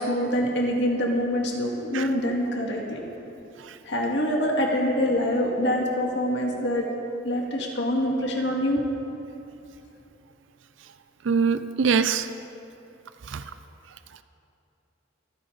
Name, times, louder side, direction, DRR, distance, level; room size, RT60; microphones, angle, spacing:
voice 1, 0.0-3.0 3.8-6.9 7.2-8.8, equal, 60° left, 0 dB, 2.0 m, -25 dB
voice 2, 11.2-12.3 13.3-13.4, right 5 dB, 75° right, 11 dB, 0.5 m, -23 dB
25.0 x 10.5 x 4.0 m, 2.8 s
head